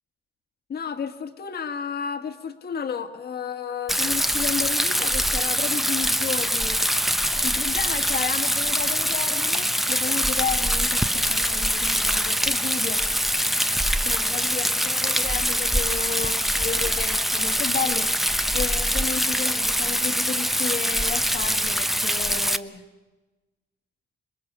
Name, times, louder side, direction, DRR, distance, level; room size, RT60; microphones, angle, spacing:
voice 1, 0.7-6.8 7.4-13.0 14.0-18.1 18.5-22.8, left 7 dB, 55° left, 8 dB, 1.8 m, -32 dB
Rain, 3.9-22.6, equal, ahead, 0.8 m, -24 dB
26.5 x 21.0 x 6.9 m, 1.2 s
cardioid pair, 90°, 20 cm